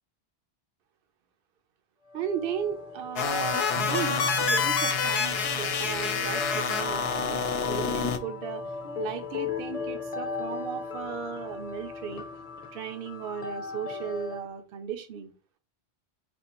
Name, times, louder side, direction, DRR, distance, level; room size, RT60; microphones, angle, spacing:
sound 1, 2.1-14.5, left 5 dB, 40° left, 0.7 m, -38 dB
voice 1, 2.1-8.6 9.0-12.2 12.7-15.3, right 8 dB, 65° right, 7 dB, 0.8 m, -36 dB
sound 2, 3.2-8.2, left 5 dB, 75° left, 0.8 m, -27 dB
sound 3, 3.7-10.9, right 1 dB, 50° right, 0.4 m, -42 dB
4.3 x 3.2 x 2.9 m, 0.34 s
omnidirectional pair, 1.1 m